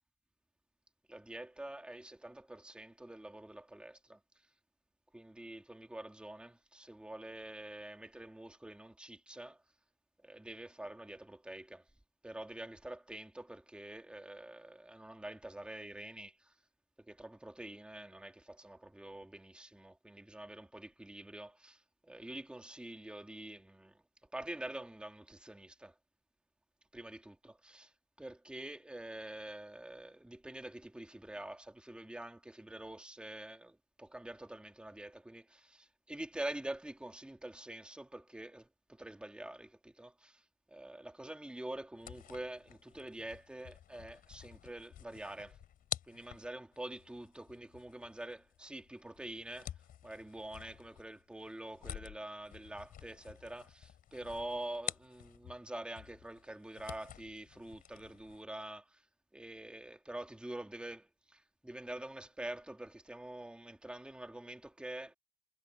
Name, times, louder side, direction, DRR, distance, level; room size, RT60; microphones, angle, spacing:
voice 1, 1.1-4.5 5.1-9.6 10.2-11.9 12.2-16.5 17.0-24.0 24.3-26.0 26.9-45.6 46.1-49.7 50.0-59.1 59.3-65.1, right 1 dB, 5° right, 2.2 m, -46 dB
sound 1, 41.9-55.7 56.0-58.4, left 10 dB, 55° left, 4.0 m, -49 dB
cardioid pair, 110°, 17 cm